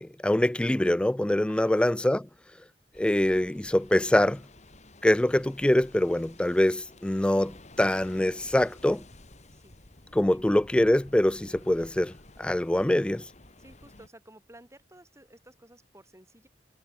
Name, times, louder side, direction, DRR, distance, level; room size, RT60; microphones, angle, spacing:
voice 1, 0.0-2.3 3.0-4.4 5.0-9.0 10.1-12.1 12.4-13.3, left 1 dB, 5° left, 0.3 m, -24 dB
sound 1, 2.9-14.1, left 2 dB, 40° left, 4.0 m, -52 dB
voice 2, 13.6-16.5, right 1 dB, 15° right, 7.6 m, -54 dB
head